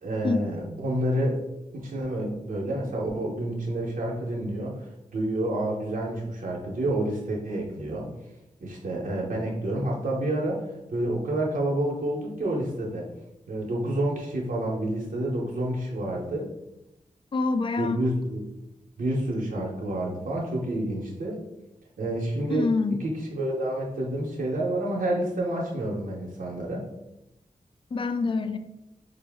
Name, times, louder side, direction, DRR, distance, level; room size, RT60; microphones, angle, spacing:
voice 1, 0.0-1.4 1.7-8.1 8.6-10.7 10.9-13.1 13.5-16.5 17.8-18.4 19.0-21.4 22.0-22.7 23.0-26.9, right 1 dB, 90° right, -3 dB, 0.8 m, -29 dB
voice 2, 17.3-18.1 22.5-23.0 27.9-28.6, left 3 dB, 40° left, 9 dB, 0.3 m, -26 dB
5.3 x 2.0 x 3.4 m, 0.88 s
wide cardioid pair, 110°, 14 cm